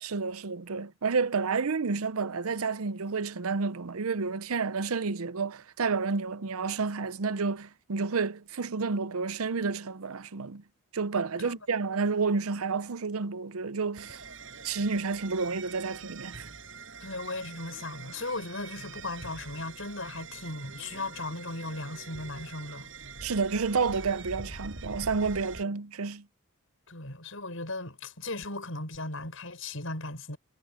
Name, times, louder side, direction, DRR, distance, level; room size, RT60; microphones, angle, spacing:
voice 1, 0.0-10.6 10.9-14.2 14.6-16.5 23.2-26.2, right 4 dB, 90° right, 0.7 m, -30 dB
sound 1, 14.0-25.6, right 4 dB, 65° right, 6.9 m, -45 dB
voice 2, 17.0-22.9 26.9-30.4, left 2 dB, 70° left, 6.8 m, -37 dB
head